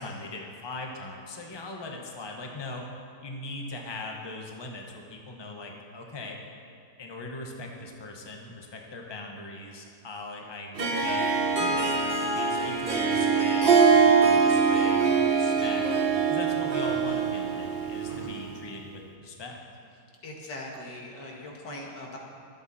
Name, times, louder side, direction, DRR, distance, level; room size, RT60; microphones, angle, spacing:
voice 1, 0.0-2.9 3.2-6.4 7.0-11.3 11.6-15.8 16.3-19.6, left 2 dB, 15° left, 1 dB, 1.1 m, -40 dB
Harp, 10.8-18.5, right 5 dB, 35° right, 1.2 m, -23 dB
voice 2, 18.1-18.5 20.2-22.2, left 1 dB, 85° left, -1 dB, 2.5 m, -41 dB
23.5 x 8.2 x 4.3 m, 2.3 s
omnidirectional pair, 1.8 m